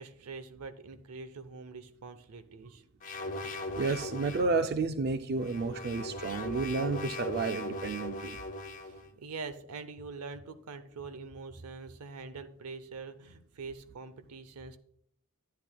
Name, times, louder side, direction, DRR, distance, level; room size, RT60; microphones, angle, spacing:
voice 1, 0.0-2.8 8.8-14.8, right 4 dB, 85° right, 11 dB, 0.7 m, -44 dB
sound 1, 3.0-4.6 5.4-9.0, left 2 dB, 35° left, 0.7 m, -39 dB
voice 2, 3.8-8.4, right 3 dB, 45° right, 9 dB, 0.4 m, -31 dB
10.5 x 10.0 x 2.2 m, 0.67 s
head